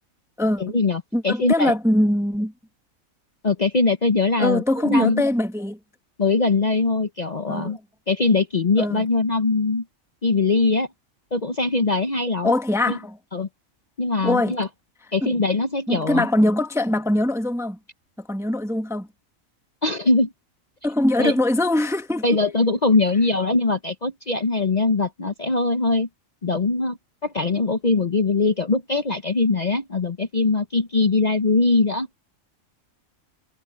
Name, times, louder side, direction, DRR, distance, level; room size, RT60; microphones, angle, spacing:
voice 1, 0.6-1.7 3.4-5.2 6.2-7.8 8.1-9.8 10.2-10.9 11.3-12.5 12.9-13.0 13.3-13.5 14.0-14.7 15.1-16.3 19.8-20.3 21.2-21.3 22.2-26.1 26.4-32.1, left 3 dB, 35° left, 0.9 m, -21 dB
voice 2, 1.1-2.5 4.4-5.8 7.5-7.8 8.8-9.0 12.4-13.2 14.2-14.5 15.2-15.3 15.9-17.8 18.3-19.1 20.8-22.2, left 1 dB, ahead, 0.9 m, -22 dB
omnidirectional pair, 1.5 m